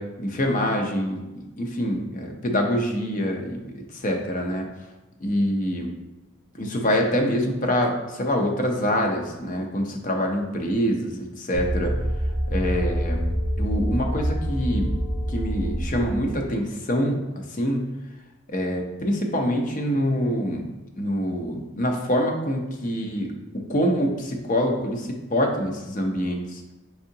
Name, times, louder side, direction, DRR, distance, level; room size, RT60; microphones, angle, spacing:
voice 1, 0.0-4.7 5.2-5.9 6.5-11.9 12.5-13.2 13.6-15.0 15.3-17.9 18.5-20.7 21.0-26.6, equal, 40° left, 2 dB, 0.6 m, -25 dB
sound 1, 11.5-16.5, equal, 25° right, 0.7 m, -26 dB
4.7 x 3.6 x 2.7 m, 1.1 s
head